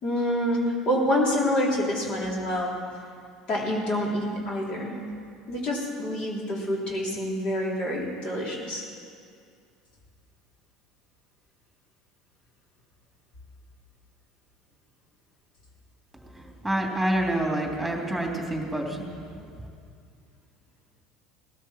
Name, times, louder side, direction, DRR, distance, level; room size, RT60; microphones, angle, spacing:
voice 1, 0.0-2.8 3.5-5.0 5.5-8.9, left 1 dB, 45° left, -3 dB, 3.8 m, -27 dB
voice 2, 16.3-19.1, right 1 dB, ahead, 0 dB, 3.1 m, -27 dB
19.0 x 13.0 x 4.6 m, 2.2 s
hypercardioid pair, 75°, 2 cm